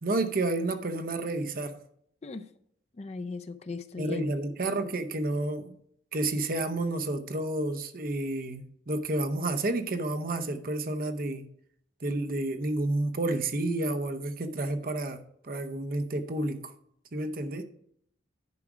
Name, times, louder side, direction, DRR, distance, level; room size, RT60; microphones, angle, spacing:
voice 1, 0.0-1.8 4.0-5.8 6.1-11.5 12.0-16.7 17.1-17.6, right 2 dB, 45° right, 0.7 m, -30 dB
voice 2, 3.0-4.3, left 4 dB, 35° left, 0.4 m, -37 dB
11.0 x 4.8 x 4.9 m
head